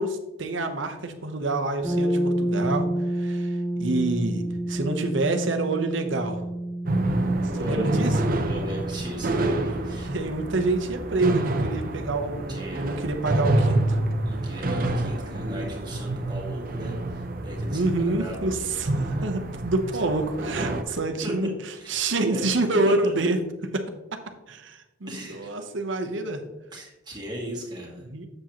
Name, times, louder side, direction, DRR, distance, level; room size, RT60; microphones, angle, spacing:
voice 1, 0.0-2.9 3.2-3.5 3.8-4.4 4.7-6.4 7.6-8.3 9.9-14.0 17.7-21.5 21.9-23.4 23.7-23.8 24.5-26.4 28.1-28.3, right 2 dB, 70° right, 6 dB, 0.9 m, -27 dB
sound 1, 1.8-11.6, right 1 dB, 45° left, 2.3 m, -30 dB
sound 2, 6.9-20.8, right 2 dB, 45° right, 0.7 m, -28 dB
voice 2, 7.5-7.9 8.5-10.1 12.5-12.9 14.3-19.3 19.9-20.2 20.8-21.5 21.7-22.9 25.1-25.6 26.7-28.0, equal, 20° right, -3 dB, 1.9 m, -38 dB
7.6 x 7.3 x 3.0 m, 1.0 s
head